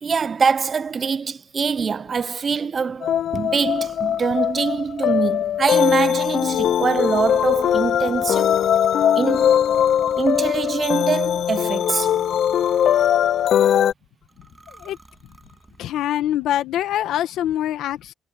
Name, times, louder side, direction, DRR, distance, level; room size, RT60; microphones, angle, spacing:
voice 1, 0.0-8.7 9.2-9.5 10.2-12.1, right 5 dB, 35° right, 0.5 m, -24 dB
sound 1, 3.0-13.9, left 10 dB, 60° left, 0.5 m, -20 dB
sound 2, 3.4-13.7 14.3-15.9, right 2 dB, 15° right, 6.3 m, -46 dB
voice 2, 15.8-18.1, left 12 dB, 75° left, 1.3 m, -24 dB
cardioid pair, 120°, 0 cm